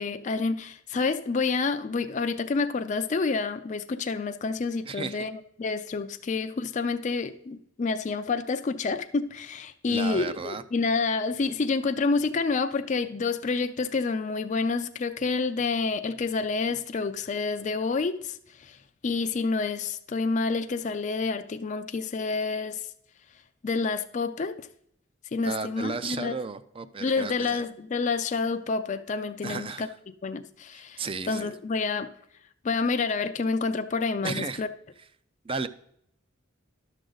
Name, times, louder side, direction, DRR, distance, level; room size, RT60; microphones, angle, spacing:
voice 1, 0.0-18.8 19.0-22.8 23.6-24.7 25.3-26.4 27.0-29.9 30.2-32.1 32.6-34.7, left 4 dB, 35° left, 8 dB, 0.4 m, -28 dB
voice 2, 4.8-5.3 9.9-10.6 25.4-27.6 29.4-29.9 30.7-31.5 34.2-34.6 35.4-35.7, right 4 dB, 25° right, 13 dB, 0.4 m, -34 dB
11.5 x 6.3 x 3.9 m, 0.70 s
head